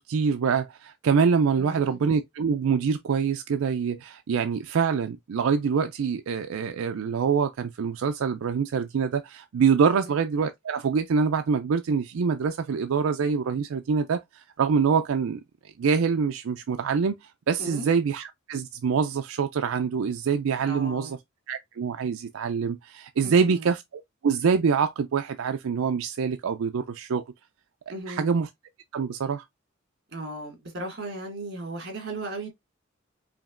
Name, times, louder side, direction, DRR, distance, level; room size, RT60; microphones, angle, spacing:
voice 1, 0.0-15.4 15.8-21.2 21.5-27.2 28.1-28.5 28.9-29.4, right 6 dB, 85° right, 0.4 m, -25 dB
voice 2, 1.6-2.0 17.6-17.9 20.6-21.1 23.2-23.7 27.9-28.3 30.1-32.5, right 2 dB, 50° right, 2.1 m, -36 dB
5.0 x 2.8 x 2.4 m
head